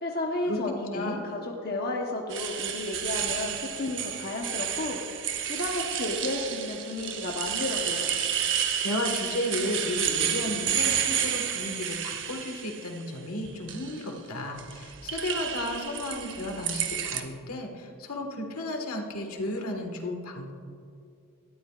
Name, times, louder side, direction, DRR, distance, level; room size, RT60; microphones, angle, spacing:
voice 1, 0.0-8.1, left 2 dB, 45° left, 0 dB, 1.0 m, -32 dB
voice 2, 0.9-1.2 8.4-20.5, left 1 dB, 80° left, 2 dB, 1.6 m, -33 dB
sound 1, 2.3-12.9 13.5-14.0 14.6-17.2, right 9 dB, 60° right, 0.9 m, -31 dB
18.5 x 13.0 x 2.4 m, 2.4 s
head